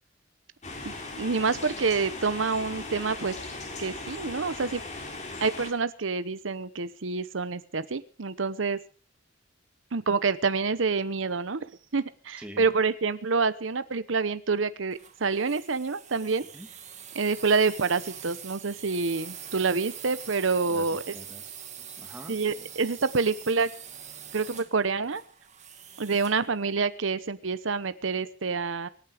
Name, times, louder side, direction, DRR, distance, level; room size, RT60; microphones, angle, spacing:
sound 1, 0.6-5.7, left 2 dB, 40° left, 3.7 m, -38 dB
voice 1, 0.8-3.4 3.8-4.8 5.4-8.8 9.9-11.6 11.9-16.5 17.1-21.2 22.3-23.7 24.3-25.2 26.0-28.9, right 4 dB, 90° right, 14 dB, 0.9 m, -27 dB
voice 2, 12.4-12.7 16.5-16.7 20.7-20.9 21.1-22.7, equal, 5° right, 3 dB, 2.7 m, -46 dB
sound 2, 14.9-26.5, right 9 dB, 40° right, 2.1 m, -44 dB
25.0 x 9.5 x 5.0 m, 0.39 s
head